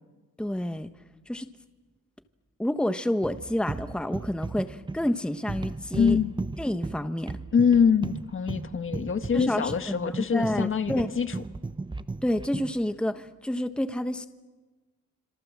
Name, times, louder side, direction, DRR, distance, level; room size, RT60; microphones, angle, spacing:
voice 1, 0.4-0.9 1.3-1.5 2.6-6.2 6.6-7.4 9.3-11.1 12.2-14.3, left 1 dB, 5° left, 9 dB, 1.3 m, -29 dB
sound 1, 3.2-12.8, right 3 dB, 15° right, 1.0 m, -36 dB
voice 2, 6.0-6.3 7.5-11.4, left 6 dB, 45° left, 9 dB, 1.9 m, -24 dB
27.5 x 27.0 x 7.6 m, 1.3 s
cardioid pair, 90°, 30 cm